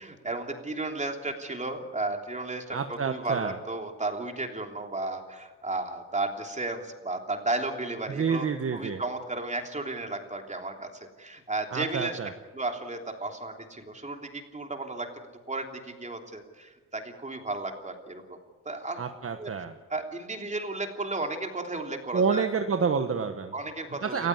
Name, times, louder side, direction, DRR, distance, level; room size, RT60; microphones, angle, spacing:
voice 1, 0.0-12.2 12.5-15.2 15.5-18.2 18.6-19.0 19.3-19.5 19.9-22.5 23.5-24.3, right 2 dB, 20° right, 4 dB, 3.2 m, -34 dB
voice 2, 2.7-3.6 8.1-9.0 11.7-12.3 19.0-19.7 22.1-23.5 24.0-24.3, right 5 dB, 45° right, 7 dB, 1.3 m, -28 dB
29.5 x 15.0 x 9.6 m, 1.3 s
cardioid pair, 110°, 32 cm